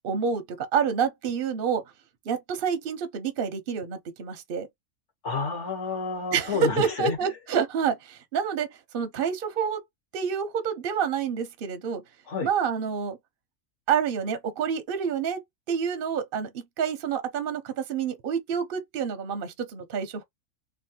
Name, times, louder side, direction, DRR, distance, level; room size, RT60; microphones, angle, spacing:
voice 1, 0.0-1.8 2.3-4.7 6.3-8.7 8.9-9.8 10.1-12.0 12.4-13.2 13.9-15.4 15.7-20.2, right 7 dB, 55° right, 0.6 m, -28 dB
voice 2, 5.2-7.2 12.3-12.5, left 5 dB, 55° left, 1.4 m, -29 dB
3.1 x 2.4 x 2.7 m
omnidirectional pair, 1.5 m